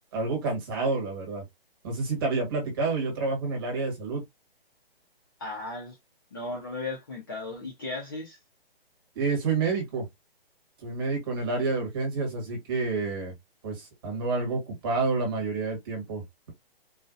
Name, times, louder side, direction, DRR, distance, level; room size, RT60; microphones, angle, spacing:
voice 1, 0.1-1.4 1.8-4.2 9.1-10.1 10.8-13.3 13.6-16.5, right 3 dB, 20° right, 1.6 m, -29 dB
voice 2, 5.4-6.0 6.3-8.4, left 2 dB, 20° left, 0.8 m, -36 dB
4.1 x 2.4 x 2.5 m
hypercardioid pair, 175°, 30 cm